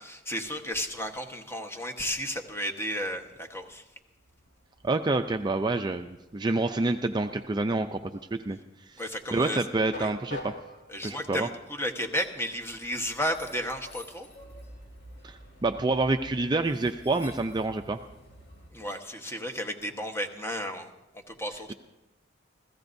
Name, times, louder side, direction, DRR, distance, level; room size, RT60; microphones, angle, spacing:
voice 1, 0.0-3.8 9.0-9.6 10.0-10.1 10.9-14.3 18.7-20.9 21.1-21.7, equal, 15° left, 5 dB, 1.2 m, -33 dB
Train, 2.0-18.7, left 1 dB, 60° left, 4.1 m, -49 dB
voice 2, 4.8-8.6 8.9-9.0 9.3-10.5 11.0-11.5 15.2-18.0 21.7-21.8, right 2 dB, 20° right, 7 dB, 0.4 m, -28 dB
28.0 x 16.0 x 2.6 m, 0.99 s
head